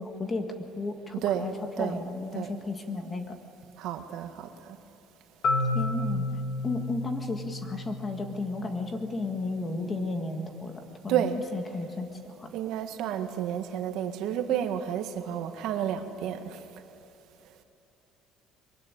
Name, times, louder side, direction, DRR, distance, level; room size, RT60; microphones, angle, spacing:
voice 1, 0.0-3.3 5.7-6.3 6.6-11.3 11.5-12.5, left 3 dB, 15° left, 5 dB, 1.7 m, -34 dB
voice 2, 1.2-1.5 1.8-2.0 2.3-2.5 3.8-4.5 11.1-11.4 12.5-16.6, right 9 dB, 60° right, 7 dB, 1.7 m, -30 dB
Marimba xylophone, 5.4-9.3, left 2 dB, 40° left, 2.7 m, -32 dB
23.5 x 23.0 x 9.8 m, 2.9 s
cardioid pair, 180°, 0 cm